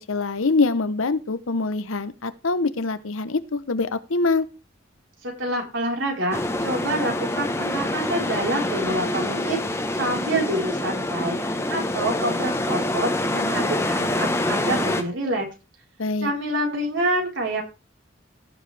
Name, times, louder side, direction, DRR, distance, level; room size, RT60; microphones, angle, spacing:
voice 1, 0.1-4.5 16.0-16.3, left 3 dB, 80° left, 13 dB, 0.9 m, -24 dB
voice 2, 5.2-15.5 16.2-17.6, right 1 dB, 70° right, 0 dB, 4.3 m, -27 dB
sound 1, 6.3-15.0, left 1 dB, 15° left, 1.1 m, -26 dB
17.0 x 7.3 x 3.4 m, 0.30 s
head